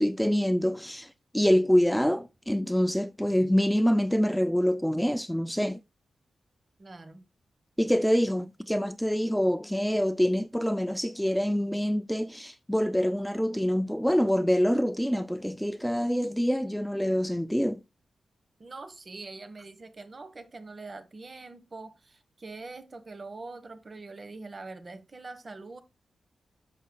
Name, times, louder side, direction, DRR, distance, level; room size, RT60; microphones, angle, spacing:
voice 1, 0.0-5.8 7.8-17.8, equal, 5° left, 0.4 m, -26 dB
voice 2, 6.8-7.2 18.6-25.8, right 3 dB, 40° right, 1.4 m, -43 dB
10.5 x 6.8 x 2.3 m
cardioid pair, 75°, 0 cm